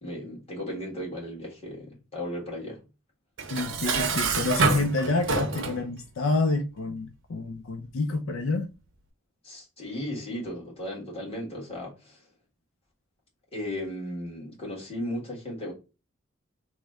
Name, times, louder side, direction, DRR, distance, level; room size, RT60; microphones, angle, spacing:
voice 1, 0.0-2.8 9.4-12.2 13.5-15.7, left 1 dB, 30° left, 1.5 m, -36 dB
Dishes pots and pans, 3.4-5.8, right 4 dB, 65° right, 0.6 m, -27 dB
voice 2, 3.5-8.7, left 3 dB, 80° left, 0.4 m, -28 dB
3.1 x 2.1 x 3.4 m
head